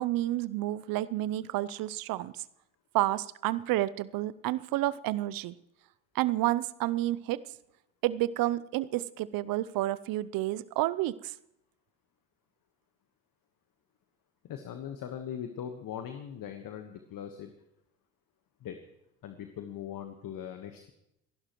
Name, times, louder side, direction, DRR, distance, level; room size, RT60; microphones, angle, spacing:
voice 1, 0.0-2.3 2.9-5.5 6.1-7.4 8.0-11.3, right 15 dB, 50° right, 18 dB, 0.7 m, -30 dB
voice 2, 14.4-17.5 18.6-18.8 19.2-20.9, left 9 dB, 45° left, 6 dB, 1.4 m, -40 dB
27.5 x 11.5 x 3.1 m, 0.83 s
hypercardioid pair, 70°, 45 cm